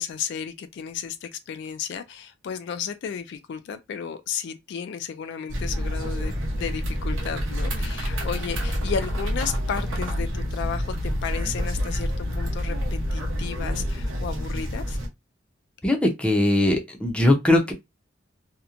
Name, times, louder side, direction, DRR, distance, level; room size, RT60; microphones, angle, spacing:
voice 1, 0.0-15.0, left 7 dB, 60° left, 0.3 m, -33 dB
sound 1, 5.5-15.1, equal, 80° right, 0.8 m, -28 dB
voice 2, 15.8-17.7, left 1 dB, 5° left, 0.5 m, -20 dB
2.8 x 2.1 x 2.4 m
head